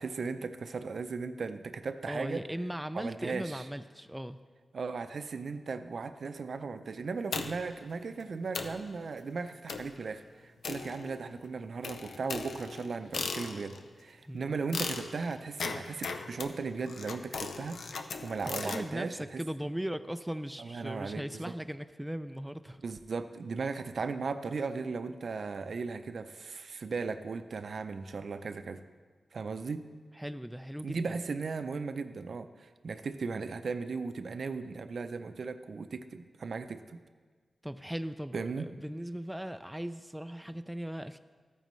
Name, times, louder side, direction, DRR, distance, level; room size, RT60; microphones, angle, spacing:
voice 1, 0.0-2.5 2.9-3.7 4.7-19.4 20.6-21.5 22.8-28.8 29.3-29.9 30.8-37.0 38.3-38.7, right 4 dB, 65° right, 10 dB, 0.5 m, -37 dB
voice 2, 2.1-4.4 14.3-14.5 18.6-22.8 30.2-31.2 37.6-41.2, equal, 5° right, 10 dB, 0.3 m, -38 dB
sound 1, 7.3-7.8 8.2-8.3 8.5-8.9 9.7-10.0 10.6-11.4 11.8-13.9 14.7-18.9, left 4 dB, 90° left, 0.6 m, -38 dB
14.0 x 9.1 x 3.1 m, 1.5 s
wide cardioid pair, 95°, 0 cm